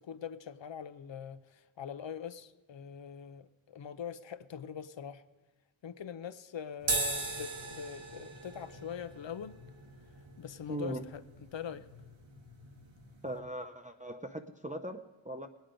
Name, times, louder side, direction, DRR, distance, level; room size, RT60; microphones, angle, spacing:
voice 1, 0.0-5.2 5.8-9.6 10.4-11.2 11.5-11.9, left 8 dB, 70° left, 0.7 m, -43 dB
sound 1, 6.8-13.4, right 2 dB, 75° right, 1.7 m, -39 dB
voice 2, 10.7-11.0 13.2-15.5, right 1 dB, 15° right, 0.6 m, -39 dB
20.5 x 9.2 x 5.1 m
wide cardioid pair, 80°, 47 cm